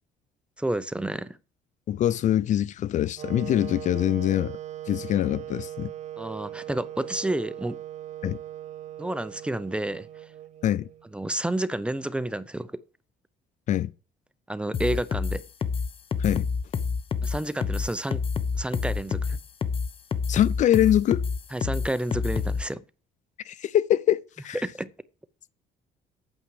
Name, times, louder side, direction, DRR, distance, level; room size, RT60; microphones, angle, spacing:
voice 1, 0.6-1.4 6.2-7.8 9.0-10.1 11.1-12.8 14.5-15.4 17.2-18.2 18.6-19.4 21.5-22.8 24.6-24.9, right 1 dB, 5° right, 0.6 m, -30 dB
voice 2, 1.9-4.6 4.9-5.9 8.2-8.4 10.6-10.9 13.7-13.9 16.2-16.5 20.3-21.2 23.5-24.6, left 11 dB, 50° left, 0.5 m, -24 dB
Wind instrument woodwind instrument, 3.2-11.1, right 11 dB, 50° right, 0.6 m, -39 dB
sound 1, 14.7-22.6, left 5 dB, 35° left, 0.9 m, -28 dB
8.9 x 6.3 x 7.6 m
cardioid pair, 125°, 16 cm